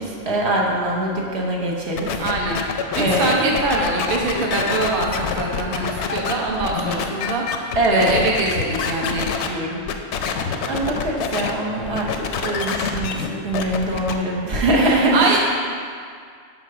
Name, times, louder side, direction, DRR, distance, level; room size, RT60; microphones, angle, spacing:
voice 1, 0.0-2.2 2.9-3.3 7.7-8.1 10.7-15.4, right 1 dB, 75° right, -3 dB, 1.3 m, -22 dB
sound 1, 2.0-9.5 9.9-11.5 11.8-14.1, left 6 dB, 90° left, 0.9 m, -26 dB
voice 2, 2.2-2.6 2.9-9.8 14.8-15.4, right 2 dB, 55° right, -2 dB, 0.9 m, -23 dB
5.1 x 4.7 x 6.1 m, 2.1 s
omnidirectional pair, 1.1 m